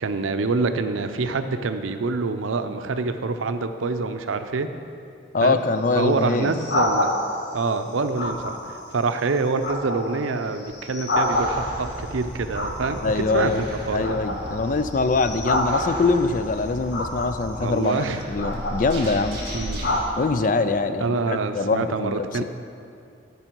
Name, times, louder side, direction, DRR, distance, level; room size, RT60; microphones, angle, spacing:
voice 1, 0.0-4.7 5.4-5.6 6.0-7.1 7.5-8.6 8.9-14.2 17.6-18.2 18.9-19.0 19.5-19.9 21.0-22.4, right 3 dB, 90° right, 9 dB, 0.6 m, -26 dB
voice 2, 5.3-6.6 13.0-13.6 13.9-19.4 20.2-22.4, left 3 dB, 40° left, 10 dB, 0.4 m, -23 dB
sound 1, 5.4-7.6 8.2-8.9 9.3-12.0 12.5-13.6 14.0-16.3 16.9-17.6 18.2-20.1, left 1 dB, 60° left, 1.0 m, -28 dB
sound 2, 11.3-20.0, right 1 dB, 50° right, 2.5 m, -36 dB
14.0 x 5.5 x 4.5 m, 2.5 s
head